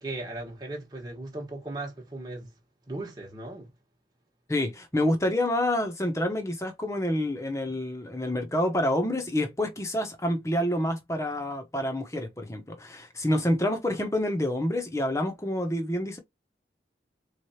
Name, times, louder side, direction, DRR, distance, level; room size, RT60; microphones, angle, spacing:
voice 1, 0.0-2.5 2.9-3.7, right 2 dB, 25° right, 1.3 m, -37 dB
voice 2, 4.5-16.2, left 1 dB, 15° left, 1.0 m, -28 dB
4.4 x 3.3 x 2.8 m
head